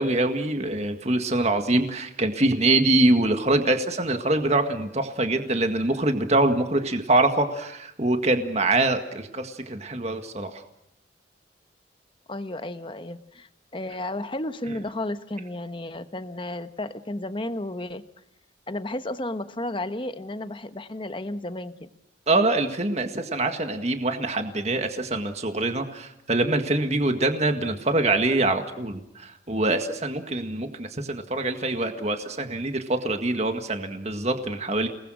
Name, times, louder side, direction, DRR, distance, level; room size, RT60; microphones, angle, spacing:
voice 1, 0.0-10.6 22.3-34.9, right 2 dB, 35° right, 6 dB, 1.8 m, -24 dB
voice 2, 12.3-18.0 18.7-21.9, left 1 dB, 25° left, 10 dB, 1.2 m, -33 dB
30.0 x 20.0 x 6.4 m, 0.83 s
head